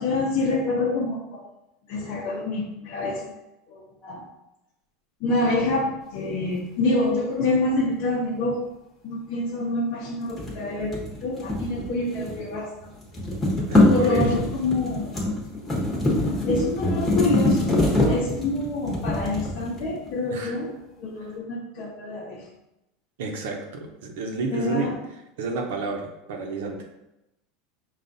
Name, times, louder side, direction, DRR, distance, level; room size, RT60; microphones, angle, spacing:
voice 1, 0.0-1.4 1.9-3.2 3.7-4.2 5.2-8.6 9.0-10.9 11.2-12.9 13.8-15.1 16.3-20.7 21.0-22.5 24.5-25.0, left 2 dB, 50° left, -5 dB, 0.8 m, -27 dB
sound 1, 10.3-12.5 12.8-20.1, left 1 dB, 10° left, 1.1 m, -24 dB
voice 2, 13.7-14.3 20.3-20.6 23.2-24.9 25.4-26.9, right 4 dB, 85° right, 2 dB, 0.8 m, -30 dB
5.5 x 2.4 x 4.0 m, 0.90 s
supercardioid pair, 160°, 0 cm